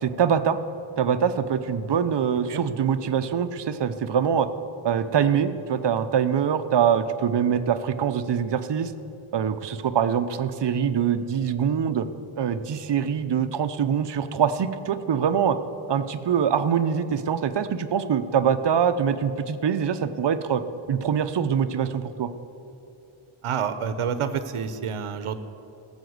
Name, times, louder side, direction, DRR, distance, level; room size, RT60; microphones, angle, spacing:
voice 1, 0.0-0.6 1.0-4.5 4.8-8.9 9.3-12.1 12.4-15.6 15.9-20.6 20.9-22.3, right 8 dB, 55° right, 10 dB, 0.7 m, -24 dB
voice 2, 23.4-25.4, right 7 dB, 85° right, 11 dB, 0.8 m, -28 dB
16.0 x 7.1 x 7.9 m, 2.9 s
wide cardioid pair, 155°, 49 cm